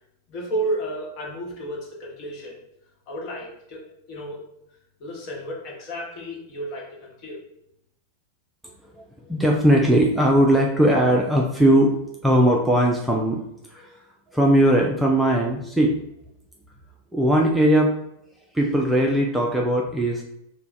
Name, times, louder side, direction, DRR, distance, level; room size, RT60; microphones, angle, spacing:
voice 1, 0.3-2.6 3.1-4.4 5.0-7.4, right 1 dB, 40° left, -3 dB, 1.1 m, -32 dB
voice 2, 8.8-11.9 12.2-14.0 14.3-15.9 17.1-17.9 18.5-20.2, right 1 dB, 5° right, -1 dB, 0.4 m, -19 dB
3.3 x 2.2 x 3.9 m, 0.78 s
figure-of-eight pair, 90°, 0 cm